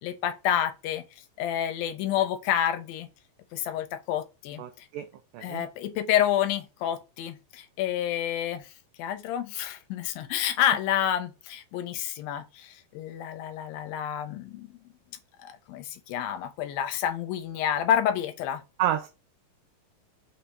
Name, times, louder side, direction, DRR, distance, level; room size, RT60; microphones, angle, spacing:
voice 1, 0.0-1.0 1.4-3.1 3.5-4.9 5.4-8.7 9.0-14.8 15.4-18.6, left 10 dB, 90° left, 2.4 m, -29 dB
voice 2, 4.6-5.1 5.3-5.7 18.8-19.1, right 11 dB, 85° right, 1.8 m, -29 dB
5.7 x 3.2 x 2.7 m
omnidirectional pair, 4.2 m